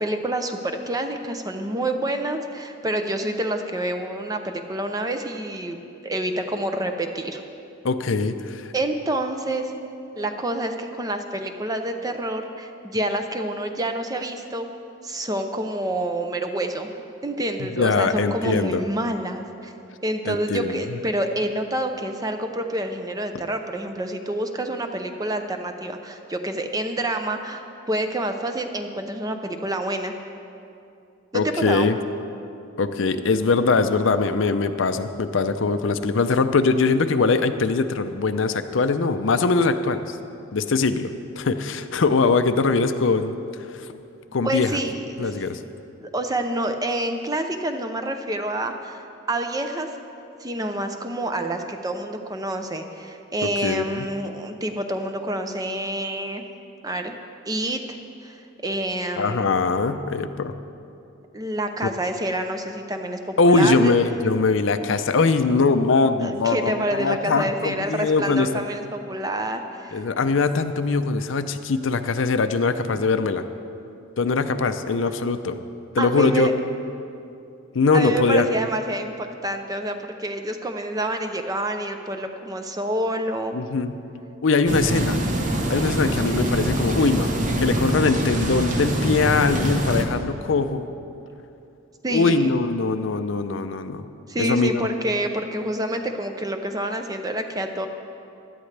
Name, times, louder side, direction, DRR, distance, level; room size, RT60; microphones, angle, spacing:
voice 1, 0.0-7.4 8.7-9.7 10.2-14.7 15.0-16.9 17.2-19.7 20.0-30.1 31.3-31.9 44.4-45.3 46.0-49.0 49.3-49.9 50.4-56.4 56.8-57.1 57.5-58.4 58.6-59.5 61.3-63.9 66.2-70.0 76.0-76.5 77.9-83.5 92.0-92.5 94.3-97.9, right 1 dB, 20° right, 6 dB, 0.6 m, -28 dB
voice 2, 7.8-8.7 17.6-18.8 20.3-21.0 31.3-32.0 32.8-40.2 40.5-43.3 43.7-43.9 44.3-44.8 45.2-45.6 53.4-54.1 59.2-60.5 63.4-68.5 69.9-73.4 74.2-75.6 75.9-76.5 77.7-78.5 83.5-83.9 84.4-85.2 85.7-87.3 87.6-90.9 92.1-94.0 94.4-94.9, left 4 dB, 65° left, 10 dB, 0.5 m, -22 dB
sound 1, 84.7-90.0, right 1 dB, 40° right, 1.0 m, -24 dB
16.5 x 11.5 x 3.3 m, 2.7 s
head